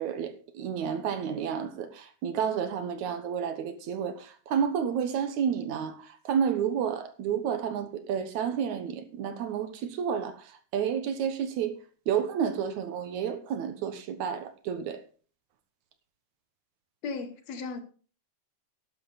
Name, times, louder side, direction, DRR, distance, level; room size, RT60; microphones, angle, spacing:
voice 1, 0.0-11.8 12.1-15.0, right 8 dB, 70° right, 2.5 m, -30 dB
voice 2, 17.0-17.8, left 4 dB, 65° left, 2.3 m, -35 dB
12.0 x 11.0 x 4.1 m
omnidirectional pair, 3.5 m